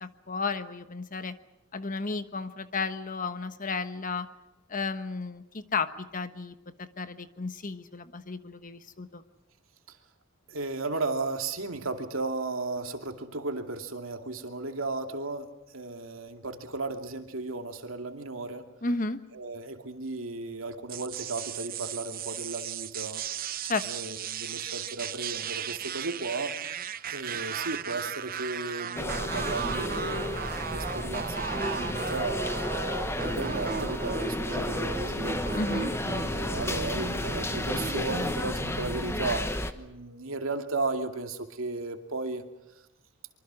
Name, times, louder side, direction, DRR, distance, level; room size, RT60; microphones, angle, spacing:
voice 1, 0.0-1.4 1.7-4.3 4.7-9.2 18.8-19.2 23.7-23.9 35.5-35.9, left 4 dB, 40° left, 10 dB, 1.2 m, -33 dB
voice 2, 10.5-18.7 19.3-23.2 23.5-26.6 27.1-32.5 33.2-35.5 36.3-39.5 39.7-42.4, right 3 dB, 85° right, 5 dB, 2.5 m, -35 dB
sound 1, 20.9-39.3, right 7 dB, 45° right, 0.8 m, -36 dB
sound 2, 29.0-39.7, left 1 dB, 15° left, 1.2 m, -32 dB
25.0 x 24.5 x 6.3 m, 0.93 s
head